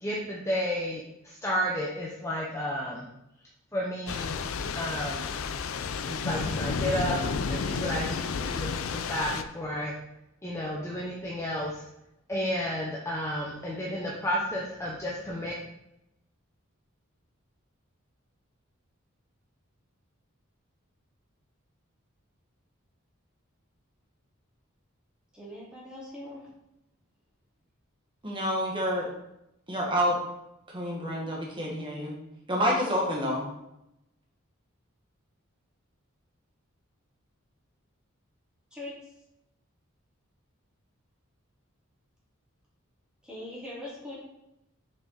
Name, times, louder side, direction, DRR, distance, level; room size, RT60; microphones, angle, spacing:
voice 1, 0.0-3.0 3.7-4.4 4.7-5.3 6.1-7.2 7.4-9.9 10.4-11.8 12.3-15.5, equal, 15° left, -3 dB, 0.8 m, -32 dB
Thunder / Rain, 4.1-9.4, left 5 dB, 75° left, 0.5 m, -31 dB
voice 2, 25.3-26.4 38.7-38.9 43.3-44.1, left 1 dB, 5° right, -8 dB, 2.4 m, -41 dB
voice 3, 28.2-29.1 29.7-30.2 30.7-32.1 32.5-33.5, equal, 25° right, -2 dB, 1.7 m, -28 dB
6.9 x 6.0 x 4.0 m, 0.85 s
head